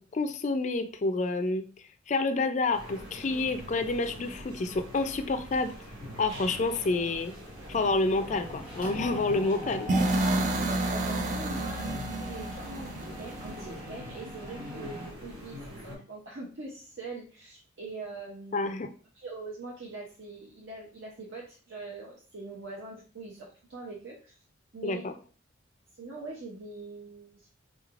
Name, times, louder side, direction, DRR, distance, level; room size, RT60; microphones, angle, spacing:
voice 1, 0.0-1.6 2.1-5.7 6.2-7.3 7.7-9.9 18.5-18.9 24.8-25.1, left 3 dB, 35° left, 8 dB, 0.3 m, -28 dB
sound 1, 2.7-16.0, left 1 dB, 85° right, 1.9 m, -44 dB
Mechanisms, 5.5-6.1 6.4-6.7 6.9-15.1, left 1 dB, 20° right, 0.9 m, -43 dB
sound 2, 9.9-13.8, right 2 dB, 40° right, 0.3 m, -29 dB
voice 2, 10.7-12.9 13.2-18.7 19.1-24.3 24.7-25.0 25.9-27.5, right 3 dB, 70° right, -3 dB, 0.7 m, -43 dB
3.7 x 3.1 x 2.4 m, 0.40 s
head